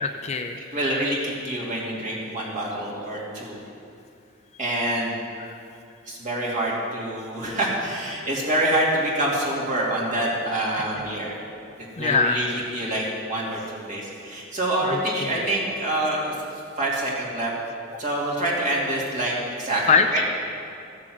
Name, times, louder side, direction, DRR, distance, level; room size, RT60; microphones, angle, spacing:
voice 1, 0.0-0.6 5.4-5.5 12.0-12.4 14.9-15.4 19.9-20.1, left 5 dB, 35° left, 6 dB, 0.6 m, -22 dB
voice 2, 0.6-3.6 4.6-5.1 6.1-11.4 11.9-16.3 16.8-17.5 18.0-20.2, right 1 dB, 40° right, -4 dB, 2.8 m, -26 dB
15.0 x 7.4 x 7.8 m, 2.5 s
head